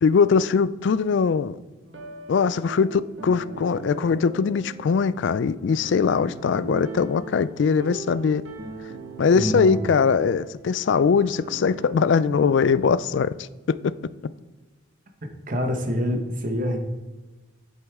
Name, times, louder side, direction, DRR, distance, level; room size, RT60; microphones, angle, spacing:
voice 1, 0.0-1.6 2.3-8.4 9.2-13.8, left 5 dB, 60° left, 0.3 m, -21 dB
sound 1, 1.9-12.5, right 4 dB, 70° right, 1.5 m, -39 dB
voice 2, 9.3-9.8 15.2-16.8, equal, 40° right, 1.1 m, -26 dB
8.4 x 7.9 x 3.6 m
head